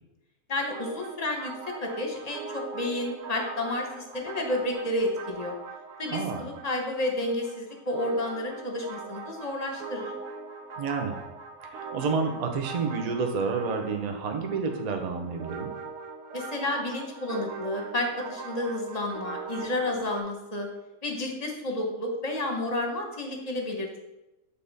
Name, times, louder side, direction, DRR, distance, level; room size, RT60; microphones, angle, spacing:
voice 1, 0.5-5.6 6.0-10.1 16.3-20.7 21.0-24.0, left 1 dB, 30° left, 2 dB, 0.9 m, -31 dB
sound 1, 0.7-20.2, right 5 dB, 70° right, 1.2 m, -41 dB
voice 2, 6.1-6.4 10.8-11.2 11.6-15.7, right 4 dB, 40° right, 4 dB, 0.6 m, -29 dB
8.5 x 3.5 x 4.1 m, 0.98 s
omnidirectional pair, 1.6 m